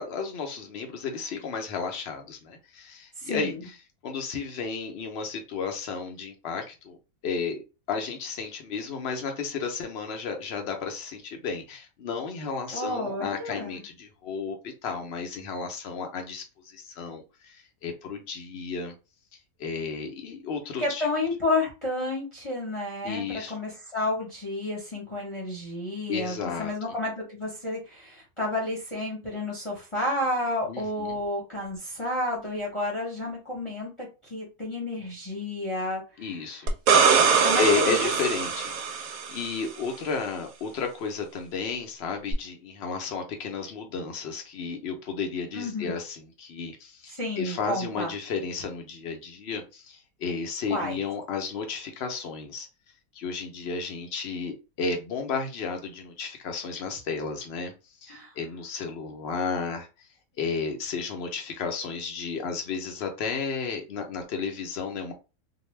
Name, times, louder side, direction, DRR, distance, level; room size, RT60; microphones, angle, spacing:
voice 1, 0.0-3.5 4.0-7.0 7.2-7.6 7.9-18.9 19.6-21.1 23.0-23.5 26.1-26.7 30.6-31.1 36.2-36.8 37.6-52.7 53.1-57.7 58.0-59.9 60.4-65.1, left 5 dB, 55° left, 4 dB, 0.7 m, -33 dB
voice 2, 3.2-3.7 12.7-13.8 20.8-36.0 37.4-38.1 45.5-45.9 47.2-48.1 50.7-51.0 58.1-58.3, left 2 dB, 25° left, -4 dB, 0.8 m, -31 dB
sound 1, 36.7-39.5 42.3-42.4, right 6 dB, 70° right, 0.9 m, -22 dB
2.6 x 2.2 x 3.2 m, 0.30 s
omnidirectional pair, 1.6 m